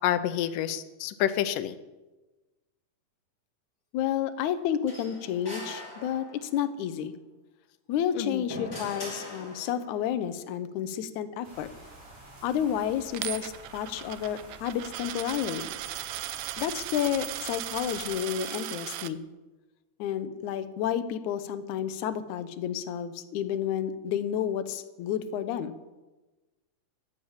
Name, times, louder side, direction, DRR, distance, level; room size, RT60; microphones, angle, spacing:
voice 1, 0.0-1.8 8.2-8.4, left 11 dB, 90° left, 12 dB, 2.4 m, -28 dB
voice 2, 3.9-7.1 7.9-11.7 12.4-15.7 16.6-19.2 20.0-25.8, left 9 dB, 70° left, 10 dB, 2.2 m, -31 dB
sound 1, 4.9-6.6 8.0-10.0, left 1 dB, 25° left, 5.0 m, -41 dB
sound 2, 11.4-18.2, right 1 dB, 55° right, 5.7 m, -50 dB
Coin (dropping), 13.1-19.1, right 14 dB, 80° right, 1.7 m, -37 dB
14.5 x 10.5 x 7.3 m, 1.1 s
omnidirectional pair, 3.7 m